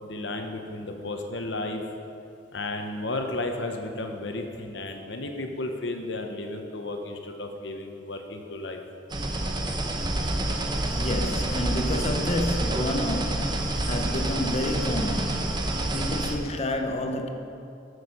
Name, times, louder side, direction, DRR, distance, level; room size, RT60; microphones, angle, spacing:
voice 1, 0.0-1.8 2.5-8.8, left 2 dB, 70° left, 4 dB, 1.0 m, -33 dB
sound 1, 9.1-16.4, right 1 dB, 25° right, 0.9 m, -28 dB
voice 2, 11.0-17.3, left 1 dB, 35° left, 5 dB, 0.8 m, -30 dB
14.5 x 6.6 x 5.5 m, 2.7 s
head